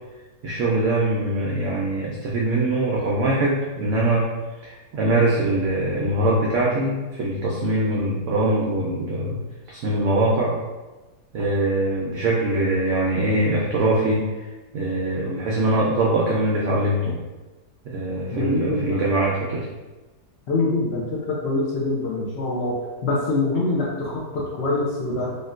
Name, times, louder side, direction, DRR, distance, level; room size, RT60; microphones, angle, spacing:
voice 1, 0.4-4.3 4.6-9.4 9.7-10.5 11.3-14.5 14.7-17.2 17.8-19.7, right 1 dB, 70° right, -4 dB, 0.7 m, -22 dB
voice 2, 18.3-19.0 20.5-22.8 23.0-25.4, left 2 dB, 65° left, -5 dB, 0.6 m, -24 dB
3.5 x 2.6 x 2.4 m, 1.2 s
omnidirectional pair, 1.7 m